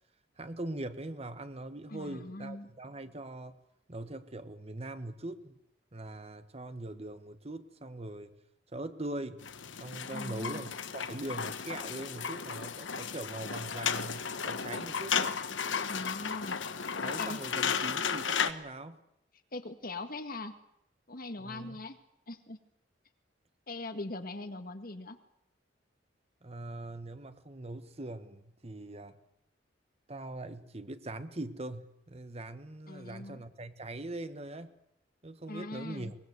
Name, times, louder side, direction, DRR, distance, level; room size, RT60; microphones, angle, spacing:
voice 1, 0.4-3.6 3.9-5.6 5.9-8.3 8.7-9.4 9.8-15.4 17.0-19.0 21.4-21.7 26.4-29.2 30.1-34.7 35.2-36.2, right 2 dB, 35° right, 10 dB, 1.3 m, -41 dB
voice 2, 1.9-2.7 10.1-10.6 15.9-16.6 17.2-17.4 19.5-20.5 21.1-22.0 22.3-22.6 23.7-25.2 32.9-33.4 35.5-36.1, left 2 dB, 50° left, 8 dB, 1.9 m, -41 dB
sound 1, 9.4-18.5, left 6 dB, 80° left, 1.3 m, -34 dB
23.0 x 21.5 x 8.1 m, 0.79 s
head